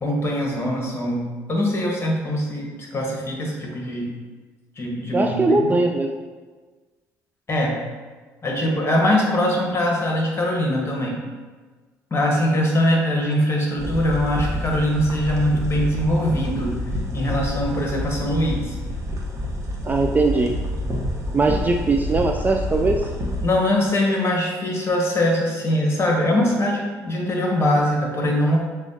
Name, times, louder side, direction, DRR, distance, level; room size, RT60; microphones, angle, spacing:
voice 1, 0.0-4.1 4.8-5.7 7.5-7.8 8.4-11.2 12.1-16.8 17.1-18.8 23.4-28.6, left 1 dB, 30° left, -1 dB, 1.3 m, -22 dB
voice 2, 5.1-6.1 19.8-20.5 21.3-23.0, right 3 dB, 20° right, 3 dB, 0.3 m, -20 dB
sound 1, 13.8-23.5, left 1 dB, 40° right, 1.1 m, -28 dB
6.9 x 2.4 x 2.8 m, 1.4 s
hypercardioid pair, 65°, 8 cm